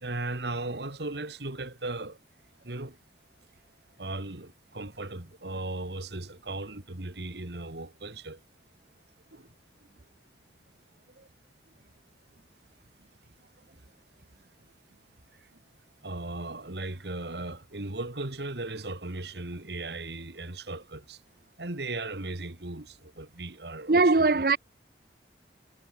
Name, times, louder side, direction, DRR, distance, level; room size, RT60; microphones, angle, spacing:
voice 1, 0.0-2.2 2.6-3.0 4.0-8.4 9.3-9.5 16.0-21.2 21.6-24.3, right 2 dB, 75° right, 2.2 m, -37 dB
voice 2, 23.9-24.6, right 3 dB, 55° right, 0.7 m, -20 dB
head